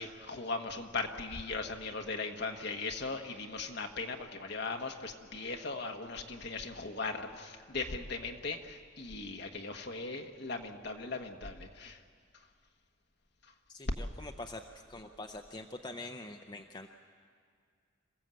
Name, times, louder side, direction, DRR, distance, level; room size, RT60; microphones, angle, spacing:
voice 1, 0.0-12.0, left 3 dB, 55° left, 3 dB, 1.5 m, -38 dB
voice 2, 13.7-14.6 14.9-16.9, left 2 dB, 20° left, 4 dB, 0.6 m, -44 dB
27.0 x 16.0 x 7.7 m, 2.1 s
head